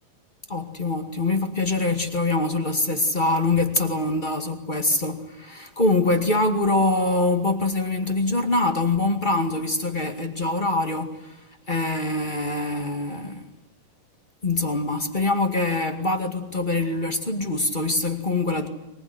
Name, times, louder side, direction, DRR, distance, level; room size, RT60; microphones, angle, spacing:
voice 1, 0.5-11.4 11.7-13.5 14.4-18.7, left 2 dB, 20° left, 6 dB, 1.4 m, -24 dB
23.5 x 21.0 x 9.7 m, 0.88 s
omnidirectional pair, 4.1 m